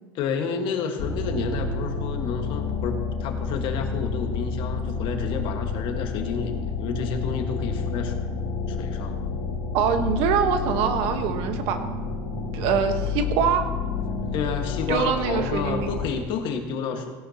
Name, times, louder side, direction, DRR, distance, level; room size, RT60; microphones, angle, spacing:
voice 1, 0.1-8.1 8.7-9.2 14.3-17.1, left 6 dB, 55° left, 5 dB, 1.7 m, -30 dB
sound 1, 1.0-16.1, left 4 dB, 75° left, 2.6 m, -29 dB
voice 2, 9.7-11.8 12.5-13.7 14.9-15.9, right 7 dB, 65° right, 7 dB, 1.3 m, -24 dB
17.5 x 11.0 x 3.0 m, 1.3 s
supercardioid pair, 105°, 10 cm